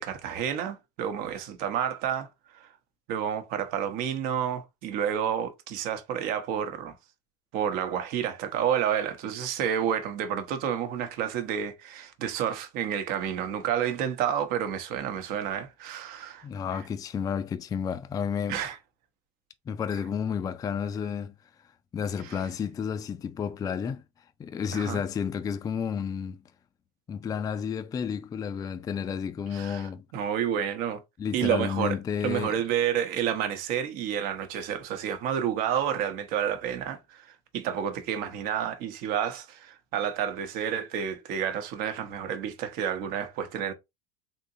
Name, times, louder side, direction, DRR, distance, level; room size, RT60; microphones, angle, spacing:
voice 1, 0.0-2.7 3.1-6.9 7.5-16.5 16.7-16.8 18.5-18.8 22.2-22.4 24.7-25.0 29.5-31.0 31.3-32.0 32.2-43.7, right 9 dB, 65° right, 0.8 m, -30 dB
voice 2, 16.4-18.6 19.7-21.3 21.9-26.4 27.1-30.0 31.2-32.6, left 7 dB, 20° left, 0.3 m, -31 dB
3.6 x 2.7 x 2.6 m
supercardioid pair, 105°, 17 cm